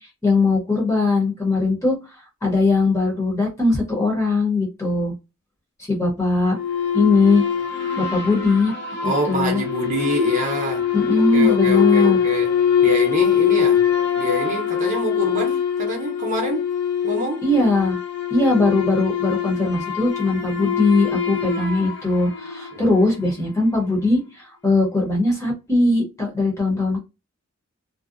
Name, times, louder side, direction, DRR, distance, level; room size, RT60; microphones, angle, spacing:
voice 1, 0.2-2.0 2.4-5.1 5.8-6.6 6.9-7.4 8.0-8.7 9.0-9.6 10.9-12.2 17.4-18.0 18.3-27.0, left 3 dB, 15° left, 0.8 m, -20 dB
sound 1, 6.5-23.1, left 8 dB, 50° left, 0.7 m, -23 dB
voice 2, 9.0-10.9 11.3-13.8 14.1-16.7 17.0-17.4 22.7-22.8, equal, 35° right, 0.7 m, -26 dB
2.6 x 2.1 x 2.4 m
head